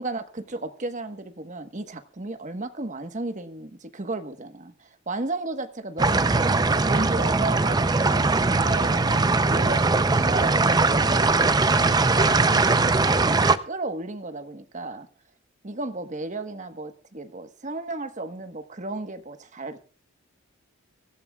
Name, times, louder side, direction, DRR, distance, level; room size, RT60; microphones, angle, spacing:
voice 1, 0.0-15.1 15.6-19.8, right 2 dB, 35° right, 1.3 m, -34 dB
sound 1, 6.0-13.6, right 3 dB, 20° right, 0.6 m, -21 dB
24.5 x 15.0 x 2.4 m
head